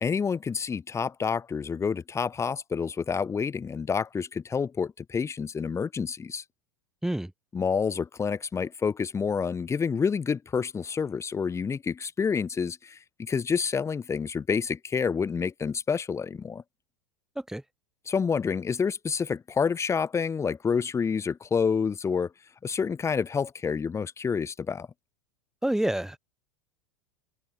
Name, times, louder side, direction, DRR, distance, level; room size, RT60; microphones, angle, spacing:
voice 1, 0.0-6.4 7.5-16.6 18.1-22.3 22.6-24.9, left 6 dB, 20° left, 0.9 m, -28 dB
voice 2, 25.6-26.2, right 1 dB, 5° right, 1.3 m, -28 dB
hypercardioid pair, 95°, 16 cm